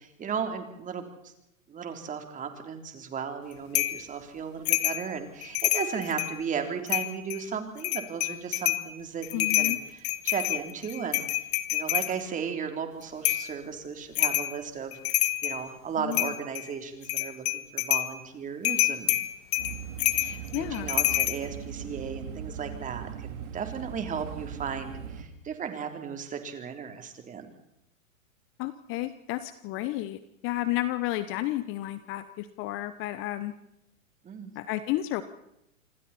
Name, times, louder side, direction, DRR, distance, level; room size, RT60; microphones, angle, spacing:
voice 1, 0.0-1.3 1.7-11.3 11.7-19.2 20.1-27.5 34.2-34.5, right 6 dB, 20° right, 6 dB, 3.6 m, -35 dB
sound 1, 3.7-4.0 4.7-5.0 5.4-6.4 6.9-7.4 7.8-8.9 9.2-12.1 13.2-13.5 14.2-14.5 14.9-15.6 16.1-16.7 17.0-18.1 18.6-21.4, left 16 dB, 50° left, 1.9 m, -27 dB
voice 2, 9.3-9.8 16.0-16.3 20.5-20.9 28.6-33.5 34.5-35.2, left 15 dB, 30° left, 13 dB, 1.2 m, -32 dB
sound 2, 19.6-25.2, right 8 dB, 55° right, 3.8 m, -39 dB
27.0 x 25.0 x 4.4 m, 0.83 s
hypercardioid pair, 125°, 41 cm